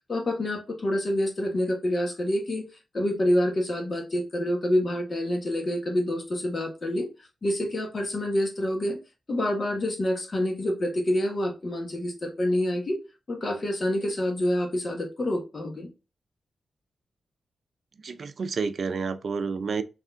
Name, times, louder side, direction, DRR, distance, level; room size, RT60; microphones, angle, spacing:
voice 1, 0.1-2.6 2.9-7.1 7.4-9.0 9.3-13.0 13.3-15.9, left 1 dB, 50° left, 1.5 m, -27 dB
voice 2, 18.0-19.8, right 5 dB, 65° right, 0.4 m, -30 dB
3.6 x 3.3 x 3.6 m
cardioid pair, 50°, 0 cm